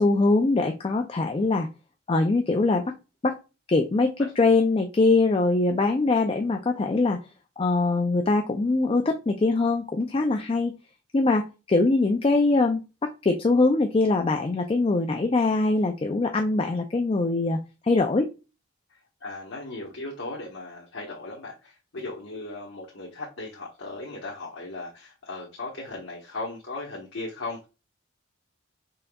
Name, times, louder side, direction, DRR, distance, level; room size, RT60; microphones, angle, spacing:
voice 1, 0.0-1.7 2.1-2.9 3.2-3.4 3.7-7.2 7.6-10.7 11.1-18.3, left 3 dB, 25° left, 4 dB, 0.4 m, -23 dB
voice 2, 19.2-27.7, left 2 dB, 85° left, -3 dB, 1.1 m, -37 dB
5.6 x 3.9 x 2.2 m, 0.30 s
head